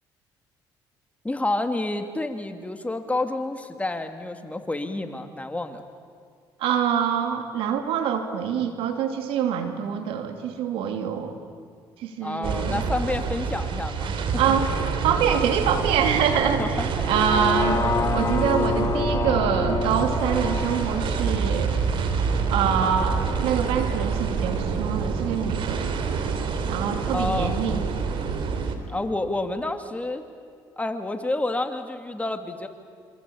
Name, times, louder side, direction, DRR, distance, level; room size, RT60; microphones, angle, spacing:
voice 1, 1.2-5.8 12.2-14.6 16.6-17.3 22.8-22.9 27.1-27.6 28.9-30.2 30.8-32.7, left 2 dB, 15° left, 6 dB, 2.6 m, -29 dB
voice 2, 6.6-11.4 12.0-12.8 14.4-14.7 15.0-17.8 18.1-21.8 22.5-25.9 26.6-27.8, right 8 dB, 80° right, 6 dB, 2.8 m, -25 dB
sound 1, 12.4-28.8, right 5 dB, 65° right, 3.1 m, -27 dB
sound 2, 17.0-23.1 23.5-23.6, left 5 dB, 35° left, 1.1 m, -29 dB
27.0 x 25.5 x 8.8 m, 2.1 s
supercardioid pair, 70°, 9 cm